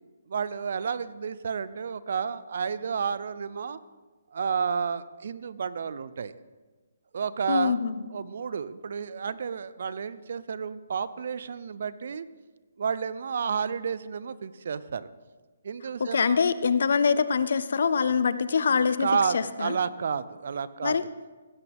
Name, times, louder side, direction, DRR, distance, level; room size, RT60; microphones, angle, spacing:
voice 1, 0.3-3.8 4.3-6.3 7.1-7.8 8.1-12.3 12.8-15.1 15.6-16.4 19.0-21.0, right 6 dB, 55° right, 16 dB, 0.5 m, -31 dB
voice 2, 7.5-8.0 16.0-19.1 19.3-19.8 20.8-21.0, left 6 dB, 65° left, 14 dB, 0.6 m, -24 dB
16.0 x 8.4 x 3.5 m, 1.3 s
hypercardioid pair, 165°, 0 cm